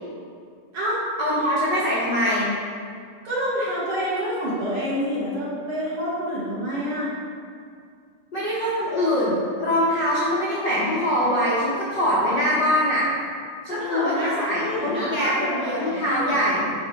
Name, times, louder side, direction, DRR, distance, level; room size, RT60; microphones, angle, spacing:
voice 1, 1.2-2.5 8.3-13.1 13.6-16.7, equal, 60° left, -8 dB, 1.1 m, -23 dB
voice 2, 3.2-7.1 13.7-16.7, equal, 50° right, -8 dB, 2.1 m, -28 dB
9.8 x 3.4 x 4.6 m, 2.2 s
omnidirectional pair, 3.6 m